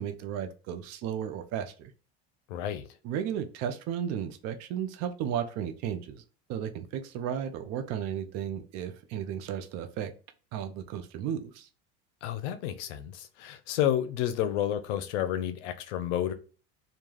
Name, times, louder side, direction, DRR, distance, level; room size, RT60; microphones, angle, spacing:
voice 1, 0.0-1.9 3.0-6.2 6.5-10.1 10.5-11.7, right 9 dB, 50° right, 0.5 m, -34 dB
voice 2, 2.5-2.8 12.2-16.3, left 11 dB, 80° left, 0.5 m, -30 dB
2.3 x 2.2 x 3.1 m
supercardioid pair, 115°, 35 cm